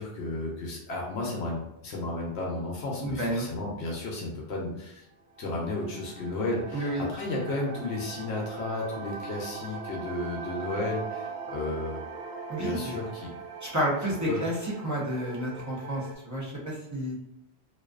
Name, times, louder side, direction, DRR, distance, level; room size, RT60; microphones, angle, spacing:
voice 1, 0.0-5.1 5.4-12.1 12.6-13.3 14.3-14.5, left 2 dB, 70° left, -2 dB, 0.8 m, -33 dB
voice 2, 3.0-3.5 6.7-7.0 12.5-12.9 13.6-17.2, equal, 20° right, -6 dB, 0.5 m, -30 dB
sound 1, 5.2-16.1, right 5 dB, 65° right, 0.7 m, -41 dB
2.5 x 2.3 x 2.3 m, 0.89 s
omnidirectional pair, 1.2 m